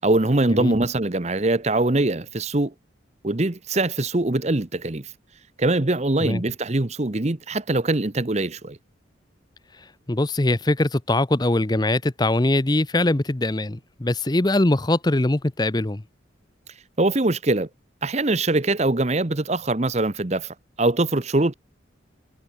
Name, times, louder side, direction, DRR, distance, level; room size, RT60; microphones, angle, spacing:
voice 1, 0.0-2.7 3.2-5.1 5.6-8.8 17.0-17.7 18.0-21.5, right 2 dB, 35° right, 1.0 m, -22 dB
voice 2, 10.1-16.0, left 2 dB, 20° left, 0.7 m, -22 dB
head